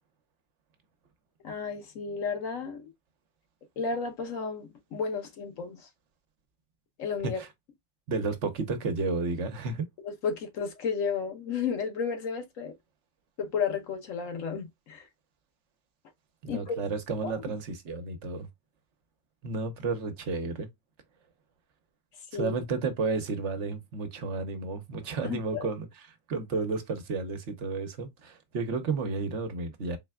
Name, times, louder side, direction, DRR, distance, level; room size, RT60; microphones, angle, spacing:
voice 1, 1.4-2.9 3.8-5.9 7.0-7.4 10.0-12.7 13.4-15.1 16.5-16.8 17.2-17.3 22.3-22.6 25.2-25.7, left 6 dB, 85° left, 1.3 m, -32 dB
voice 2, 8.1-9.9 16.5-18.5 19.4-20.7 22.3-25.9 26.3-30.0, right 4 dB, 65° right, 1.1 m, -32 dB
4.1 x 3.2 x 2.2 m
omnidirectional pair, 1.3 m